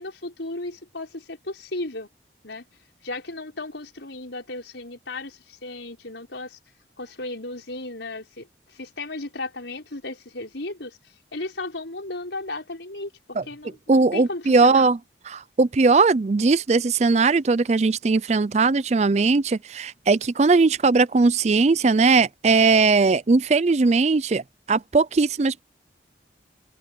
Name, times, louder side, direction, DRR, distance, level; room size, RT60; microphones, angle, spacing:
voice 1, 0.0-2.1 2.4-2.6 3.0-6.6 7.0-14.9, left 2 dB, 85° left, 5.6 m, -35 dB
voice 2, 13.9-15.0 15.3-24.4 24.7-25.6, right 4 dB, 40° right, 0.4 m, -19 dB
head